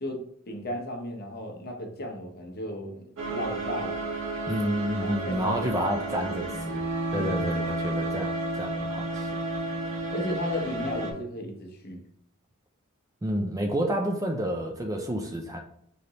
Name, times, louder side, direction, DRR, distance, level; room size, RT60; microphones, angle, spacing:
voice 1, 0.0-4.1 5.0-5.5 5.8-5.9 6.2-6.3 7.1-7.4 10.1-12.0, left 1 dB, 45° left, 2 dB, 0.8 m, -35 dB
sound 1, 3.2-11.1, right 2 dB, 60° right, 0.8 m, -32 dB
voice 2, 4.5-6.8 7.1-9.3 13.2-15.6, equal, 15° right, 3 dB, 0.4 m, -29 dB
3.9 x 3.3 x 2.8 m, 0.70 s
head